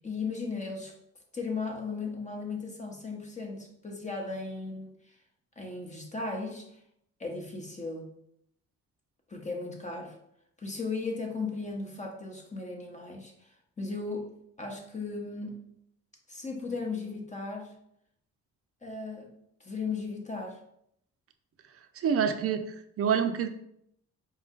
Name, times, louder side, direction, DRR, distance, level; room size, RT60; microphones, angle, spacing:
voice 1, 0.0-0.9 1.3-4.9 5.6-6.8 7.2-8.1 9.3-10.2 10.6-13.3 13.8-14.3 14.6-15.6 16.3-17.7 18.8-19.3 19.6-20.6, left 4 dB, 25° left, 1 dB, 0.9 m, -36 dB
voice 2, 22.0-23.5, right 7 dB, 50° right, 8 dB, 0.5 m, -27 dB
4.2 x 2.4 x 3.7 m, 0.73 s
cardioid pair, 90°, 30 cm